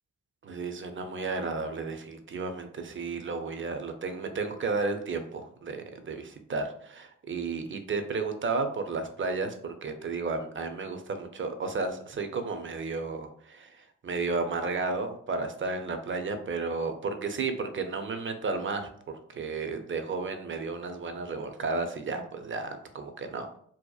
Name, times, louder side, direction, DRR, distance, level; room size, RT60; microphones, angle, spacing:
voice 1, 0.4-23.5, right 4 dB, 40° right, 7 dB, 0.5 m, -33 dB
2.7 x 2.1 x 2.3 m, 0.62 s
supercardioid pair, 40°, 33 cm